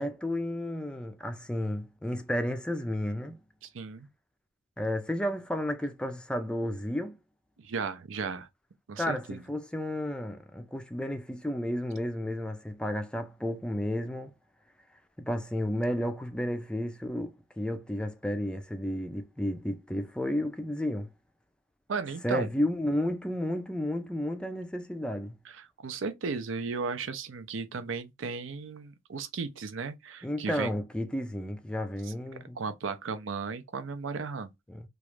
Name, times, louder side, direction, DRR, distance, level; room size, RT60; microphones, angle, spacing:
voice 1, 0.0-3.4 4.8-7.2 9.0-14.3 15.2-21.1 22.2-25.4 30.2-32.6 34.7-34.8, left 1 dB, 5° left, 0.4 m, -32 dB
voice 2, 3.6-4.1 7.6-8.5 8.9-9.4 21.9-22.5 25.5-30.7 32.6-34.5, right 5 dB, 80° right, 0.5 m, -35 dB
3.0 x 2.4 x 3.1 m
head